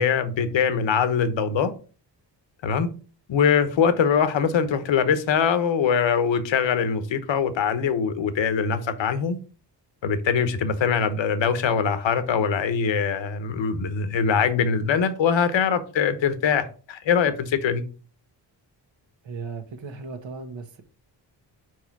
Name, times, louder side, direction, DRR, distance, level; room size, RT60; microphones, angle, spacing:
voice 1, 0.0-1.7 2.6-2.9 3.3-9.4 10.0-17.8, left 6 dB, 90° left, 1.1 m, -22 dB
voice 2, 19.2-20.8, right 4 dB, 85° right, 1.4 m, -36 dB
5.0 x 4.7 x 6.0 m
cardioid pair, 100°, 44 cm